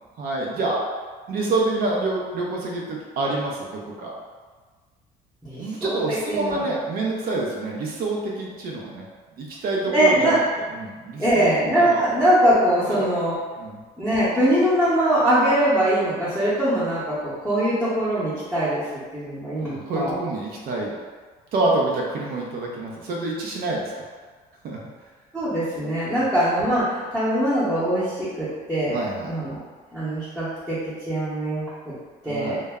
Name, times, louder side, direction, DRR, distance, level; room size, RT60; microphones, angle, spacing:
voice 1, 0.2-0.8 1.3-4.1 5.6-9.1 9.4-10.4 10.7-12.0 12.9-13.1 13.6-13.8 19.6-21.0 21.5-24.0 24.6-24.8 26.1-26.2 28.9-29.3 32.2-32.6, right 2 dB, 65° right, -2 dB, 0.5 m, -27 dB
voice 2, 5.4-6.6 9.9-10.4 11.2-13.4 14.0-18.8 19.1-20.2 25.3-29.0 29.3-29.6 29.9-30.8 31.1-31.9 32.2-32.6, right 1 dB, 5° right, -14 dB, 0.8 m, -22 dB
2.2 x 2.0 x 3.4 m, 1.4 s
cardioid pair, 110°, 17 cm